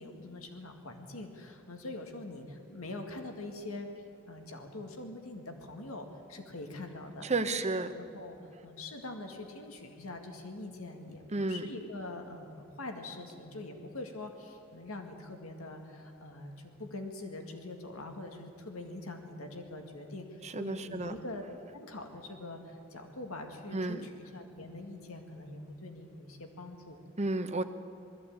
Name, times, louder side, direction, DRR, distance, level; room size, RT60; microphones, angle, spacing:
voice 1, 0.0-7.3 7.5-7.6 8.0-8.4 8.6-21.4 21.7-27.1, left 2 dB, 85° left, 4 dB, 2.0 m, -44 dB
voice 2, 7.2-7.9 11.3-11.7 20.4-21.1 23.7-24.1 27.2-27.6, right 2 dB, 30° right, 9 dB, 1.0 m, -32 dB
20.5 x 14.5 x 8.7 m, 2.7 s
head